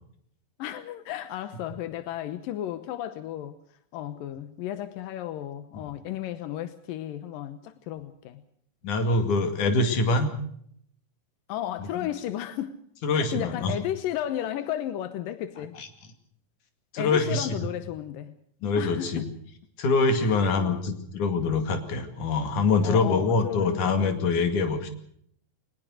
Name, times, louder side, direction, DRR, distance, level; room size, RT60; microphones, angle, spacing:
voice 1, 0.6-3.6 3.9-8.4 11.5-12.8 13.1-15.8 17.0-18.3 18.7-19.2 20.2-20.9 22.8-24.3, left 12 dB, 90° left, 11 dB, 2.7 m, -34 dB
voice 2, 8.8-10.3 11.8-11.9 13.0-13.8 15.8-15.9 16.9-17.5 18.6-19.2 19.8-24.9, left 3 dB, 65° left, 7 dB, 3.7 m, -24 dB
21.5 x 20.0 x 6.4 m, 0.66 s
omnidirectional pair, 3.8 m